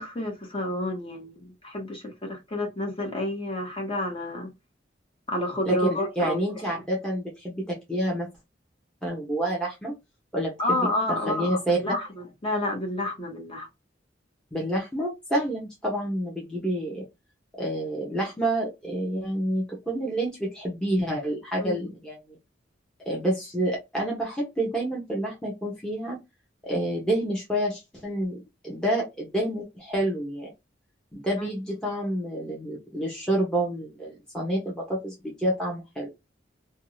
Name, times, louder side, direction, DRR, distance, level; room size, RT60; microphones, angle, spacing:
voice 1, 0.0-4.5 5.3-6.4 10.6-13.7 21.6-21.8 31.4-31.5, left 1 dB, 30° left, 1.1 m, -30 dB
voice 2, 5.6-8.3 9.0-9.9 10.3-10.8 11.1-11.8 14.5-17.0 17.5-22.4 23.1-26.2 26.6-30.5 31.1-36.1, right 1 dB, 5° left, 0.8 m, -28 dB
2.6 x 2.3 x 3.1 m
head